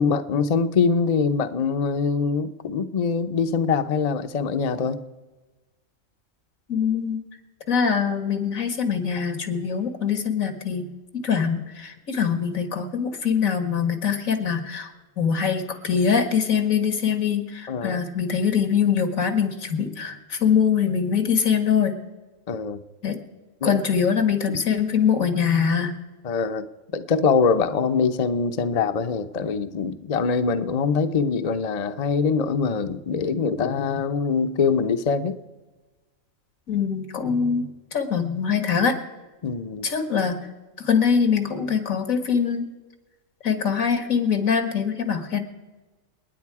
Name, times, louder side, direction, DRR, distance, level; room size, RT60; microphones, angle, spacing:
voice 1, 0.0-5.0 17.7-18.0 22.5-22.8 23.6-23.8 26.2-26.7 26.9-35.4 39.4-39.9, left 5 dB, 40° left, 8 dB, 0.7 m, -23 dB
voice 2, 6.7-7.2 7.7-14.9 15.2-22.0 23.0-23.2 23.6-25.9 36.7-37.7 37.9-39.0 39.8-40.4 40.8-42.6 43.4-45.4, left 6 dB, 85° left, 7 dB, 2.1 m, -23 dB
28.5 x 10.0 x 4.8 m, 1.2 s
omnidirectional pair, 1.4 m